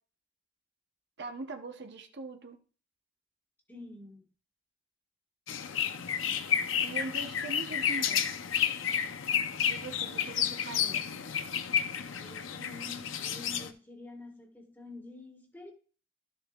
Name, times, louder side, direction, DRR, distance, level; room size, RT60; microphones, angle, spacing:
voice 1, 1.2-2.6 6.8-8.3 9.7-11.1, right 3 dB, 60° right, 0.9 m, -41 dB
voice 2, 3.7-4.2 11.9-15.7, left 2 dB, 10° left, 1.6 m, -48 dB
sound 1, 5.5-13.7, left 8 dB, 75° left, 0.7 m, -31 dB
12.5 x 6.9 x 2.4 m
head